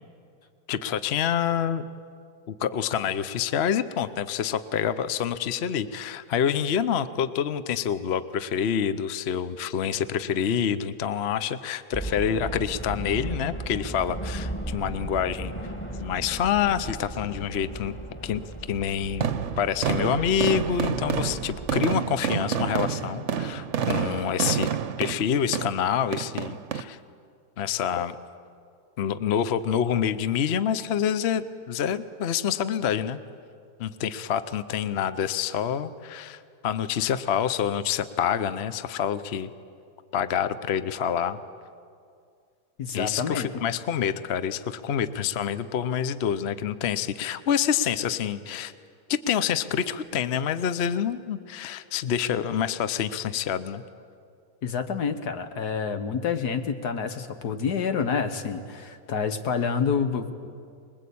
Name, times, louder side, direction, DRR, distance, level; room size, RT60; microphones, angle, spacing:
voice 1, 0.7-1.8 2.5-15.5 16.0-18.0 18.2-18.4 18.7-19.3 19.6-24.7 25.0-27.0 27.6-28.2 29.0-33.2 33.8-39.5 40.1-41.4 42.9-48.7 49.1-53.8, left 8 dB, 50° left, 13 dB, 0.9 m, -27 dB
sound 1, 11.9-21.8, right 1 dB, 5° left, 1.7 m, -36 dB
sound 2, 19.2-26.8, right 8 dB, 55° right, 1.0 m, -29 dB
voice 2, 42.8-43.5 54.6-60.5, left 6 dB, 75° left, 8 dB, 1.9 m, -28 dB
25.0 x 21.5 x 8.5 m, 2.3 s
omnidirectional pair, 1.7 m